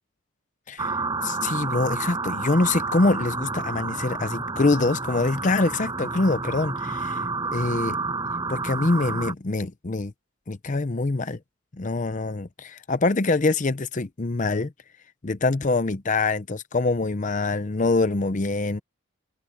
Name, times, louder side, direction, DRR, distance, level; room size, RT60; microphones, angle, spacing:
sound 1, 0.8-9.3, right 3 dB, 20° right, 5.5 m, -30 dB
voice 1, 1.2-7.2 7.5-8.0 8.5-10.1 10.5-11.4 11.8-14.7 15.2-18.8, left 3 dB, 40° left, 0.7 m, -24 dB
head